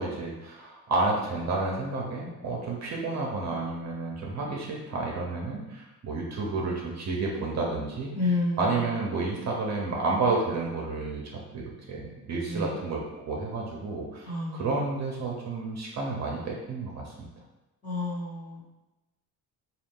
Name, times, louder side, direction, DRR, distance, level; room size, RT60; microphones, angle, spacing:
voice 1, 0.0-8.1 8.6-17.3, right 3 dB, 45° right, -2 dB, 0.7 m, -31 dB
voice 2, 8.1-8.8 12.4-12.7 14.3-14.8 17.8-18.6, left 2 dB, 20° left, -6 dB, 1.1 m, -30 dB
3.9 x 2.4 x 3.7 m, 1.0 s
cardioid pair, 150°, 39 cm